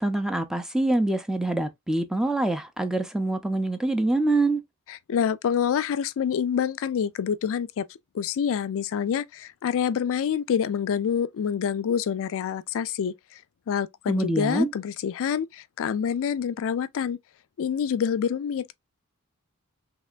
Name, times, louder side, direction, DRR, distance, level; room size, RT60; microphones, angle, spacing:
voice 1, 0.0-4.6 14.1-14.7, right 2 dB, 5° right, 0.4 m, -25 dB
voice 2, 4.9-7.9 8.1-13.4 13.7-17.2 17.6-18.8, left 7 dB, 65° left, 0.3 m, -27 dB
3.3 x 2.9 x 2.4 m
head